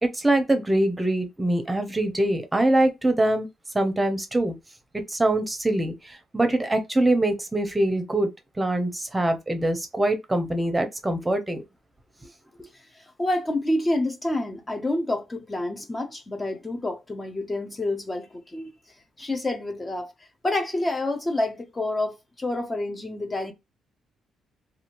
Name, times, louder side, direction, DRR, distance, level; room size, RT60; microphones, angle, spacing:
voice 1, 0.0-3.5 3.7-4.5 5.1-8.3 8.6-11.6, right 1 dB, 15° right, 0.7 m, -23 dB
voice 2, 12.7-18.7 19.2-23.5, left 1 dB, 20° left, 0.6 m, -28 dB
2.7 x 2.4 x 3.0 m
cardioid pair, 90°, 0 cm